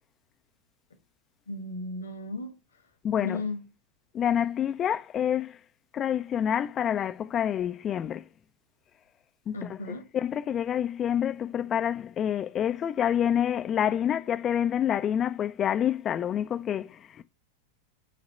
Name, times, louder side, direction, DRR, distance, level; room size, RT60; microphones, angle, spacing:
voice 1, 1.5-2.5 3.2-3.7 9.5-10.0, left 2 dB, 75° left, 1.1 m, -35 dB
voice 2, 3.0-3.4 4.1-5.6 5.9-8.2 9.5-9.8 10.1-17.2, left 9 dB, 25° left, 0.3 m, -27 dB
6.4 x 2.9 x 5.4 m
figure-of-eight pair, 90°, 0 cm